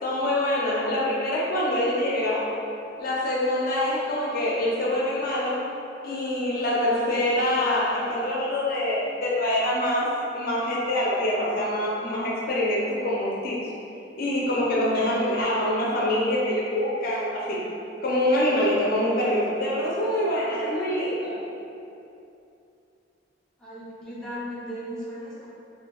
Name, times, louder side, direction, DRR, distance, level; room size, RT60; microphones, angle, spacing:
voice 1, 0.0-2.5 3.0-5.7 6.0-13.6 14.1-17.6 18.0-21.3, left 1 dB, 55° left, -5 dB, 0.4 m, -25 dB
voice 2, 6.8-7.5 23.6-25.5, right 1 dB, 5° left, -10 dB, 0.5 m, -36 dB
2.5 x 2.2 x 2.9 m, 2.7 s
head